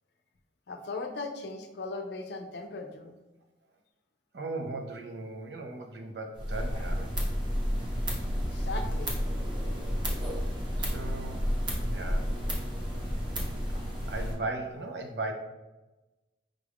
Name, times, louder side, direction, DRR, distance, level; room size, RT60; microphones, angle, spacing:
voice 1, 0.7-3.1 8.5-9.2, left 3 dB, 65° left, 5 dB, 0.5 m, -38 dB
voice 2, 4.3-7.2 10.8-12.3 14.1-15.3, right 2 dB, 70° right, 3 dB, 0.6 m, -37 dB
sound 1, 6.4-14.3, equal, 25° right, 0.7 m, -31 dB
5.1 x 2.4 x 3.4 m, 1.1 s
head